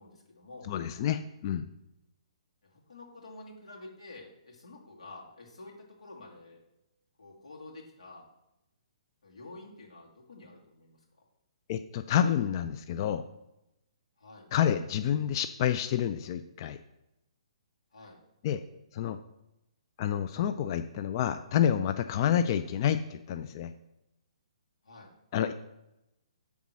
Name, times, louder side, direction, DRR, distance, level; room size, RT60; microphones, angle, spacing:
voice 1, 0.0-0.7 2.6-6.6 7.2-8.2 9.2-11.0 14.2-14.5 17.9-18.2 24.8-25.1, left 2 dB, 75° left, -2 dB, 2.2 m, -49 dB
voice 2, 0.7-1.7 11.7-13.2 14.5-16.8 18.4-18.6 18.9-19.2 20.0-23.7 25.3-25.5, left 9 dB, 40° left, 9 dB, 0.4 m, -28 dB
8.1 x 3.6 x 6.1 m, 0.90 s
hypercardioid pair, 140°, 3 cm